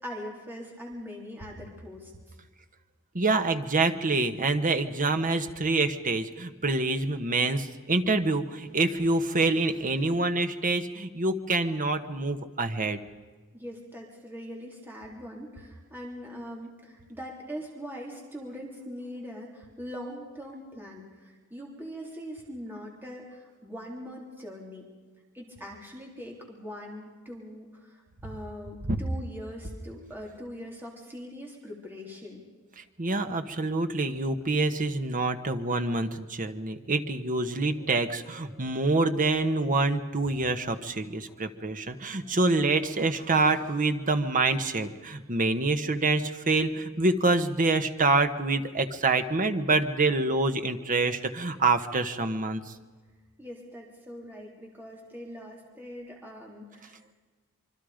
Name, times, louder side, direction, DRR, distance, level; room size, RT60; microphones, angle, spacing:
voice 1, 0.0-2.1 13.5-24.9 25.3-28.0 28.2-32.4 53.4-57.1, equal, 10° right, -2 dB, 3.6 m, -42 dB
voice 2, 3.1-13.0 28.9-29.0 33.0-52.6, right 3 dB, 35° right, 8 dB, 1.3 m, -26 dB
26.0 x 24.0 x 5.2 m, 1.4 s
head